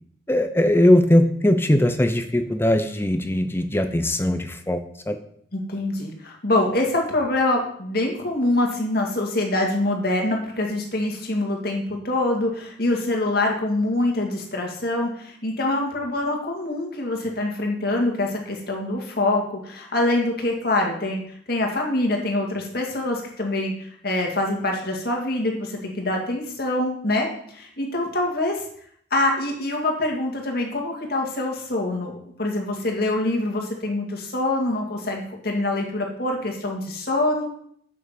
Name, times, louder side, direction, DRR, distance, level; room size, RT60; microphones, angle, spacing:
voice 1, 0.3-5.2, left 1 dB, 10° left, 8 dB, 0.7 m, -20 dB
voice 2, 5.5-21.2 21.5-28.6 29.1-37.5, left 2 dB, 50° left, 1 dB, 2.0 m, -25 dB
6.8 x 6.5 x 6.9 m, 0.65 s
head